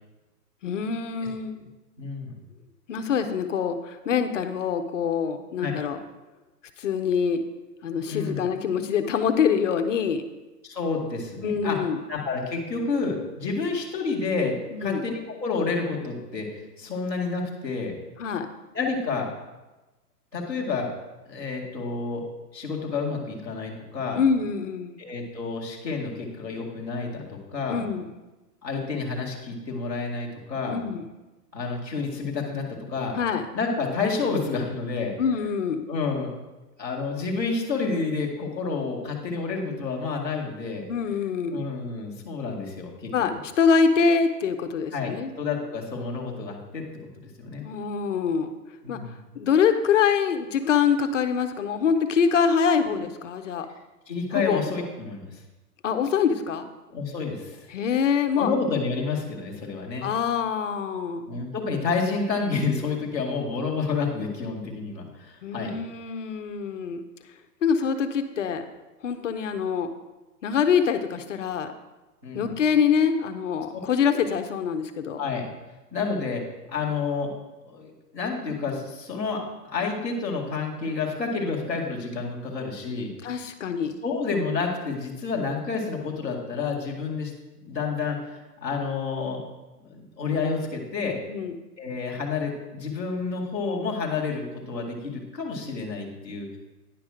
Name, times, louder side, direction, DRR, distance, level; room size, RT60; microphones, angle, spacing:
voice 1, 0.6-1.6 2.9-6.0 6.8-7.4 7.8-10.2 11.4-12.0 14.7-15.0 18.2-18.5 24.2-25.0 27.7-28.1 30.7-31.0 33.1-33.5 35.2-35.9 40.9-41.7 43.1-45.3 47.6-48.5 48.9-49.0 49.4-53.7 54.3-54.7 55.8-56.7 57.7-58.5 60.0-61.3 65.4-67.0 67.6-68.7 69.0-69.9 70.4-71.7 72.3-75.2 83.2-84.0 91.3-91.6, left 6 dB, 50° left, 8 dB, 0.7 m, -25 dB
voice 2, 2.0-2.4 5.6-5.7 8.1-8.4 10.6-11.8 12.1-18.0 18.7-19.3 20.3-20.9 21.2-22.2 22.5-24.2 25.0-27.8 28.6-30.8 31.5-33.1 33.5-35.1 35.8-36.3 36.8-40.9 41.5-43.1 44.9-47.6 48.8-49.1 54.1-55.4 56.9-57.7 58.3-60.1 61.3-65.7 72.2-72.5 75.2-75.4 75.9-76.4 76.7-77.3 77.6-83.5 84.0-87.3 87.6-89.4 89.9-91.2 91.8-96.6, left 4 dB, 5° right, -10 dB, 0.6 m, -29 dB
10.0 x 6.0 x 4.9 m, 1.1 s
hypercardioid pair, 165°, 49 cm